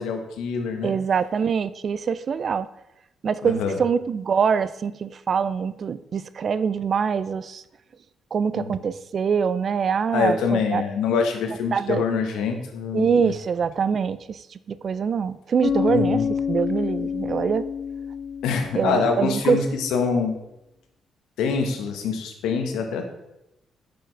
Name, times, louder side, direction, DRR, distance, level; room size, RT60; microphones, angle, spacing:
voice 1, 0.0-0.9 3.4-3.8 8.5-8.7 10.1-13.3 15.9-16.3 18.4-20.4 21.4-23.0, left 5 dB, 85° left, 5 dB, 1.0 m, -25 dB
voice 2, 0.8-2.7 3.2-7.6 8.3-10.8 11.7-12.1 12.9-14.4 14.7-16.2 16.5-17.6 18.7-19.6, right 6 dB, 50° right, 16 dB, 0.3 m, -24 dB
Bass guitar, 15.6-19.4, left 7 dB, 50° left, 0.5 m, -27 dB
6.7 x 6.2 x 3.3 m, 0.87 s
cardioid pair, 90°, 0 cm